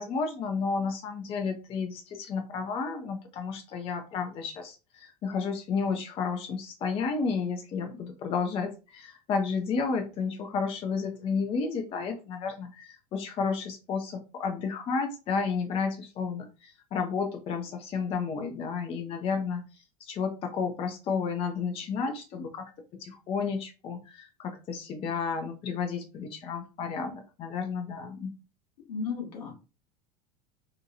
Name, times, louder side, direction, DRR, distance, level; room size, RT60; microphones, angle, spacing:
voice 1, 0.0-28.4, left 5 dB, 30° left, 5 dB, 0.4 m, -32 dB
voice 2, 28.9-29.5, left 5 dB, 65° left, 1 dB, 1.0 m, -34 dB
2.8 x 2.2 x 2.6 m, 0.31 s
figure-of-eight pair, 80°, 21 cm